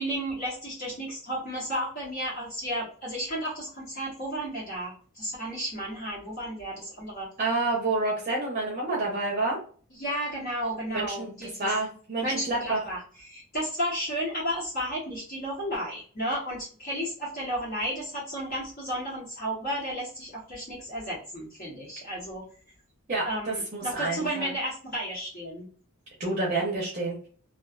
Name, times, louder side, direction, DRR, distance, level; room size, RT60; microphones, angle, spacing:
voice 1, 0.0-7.3 10.0-11.7 12.2-22.4 23.2-25.7, equal, 45° left, -6 dB, 0.9 m, -33 dB
voice 2, 7.4-9.6 10.9-12.8 23.1-24.5 26.2-27.2, right 2 dB, 35° right, -2 dB, 0.6 m, -29 dB
2.4 x 2.3 x 2.4 m, 0.43 s
head